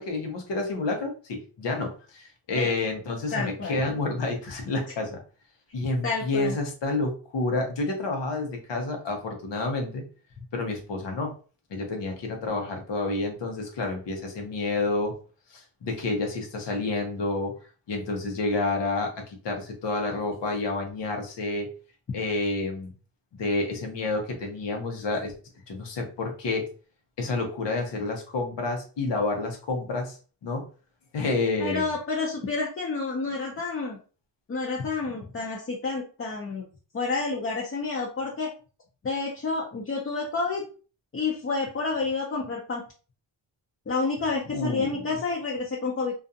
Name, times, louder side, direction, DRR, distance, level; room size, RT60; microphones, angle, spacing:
voice 1, 0.0-5.2 5.7-10.1 10.5-11.3 11.7-15.1 15.5-17.5 17.9-21.7 22.1-22.9 23.3-25.3 25.7-26.7 27.2-30.2 30.4-30.7 31.1-31.9 44.5-45.0, left 3 dB, 80° left, 2 dB, 0.9 m, -29 dB
voice 2, 3.3-3.8 6.0-6.6 31.6-34.0 34.5-36.6 36.9-38.5 39.0-40.6 41.1-42.8 43.9-46.1, left 4 dB, 30° left, -1 dB, 0.6 m, -29 dB
2.5 x 2.3 x 2.6 m, 0.37 s
cardioid pair, 90°, 42 cm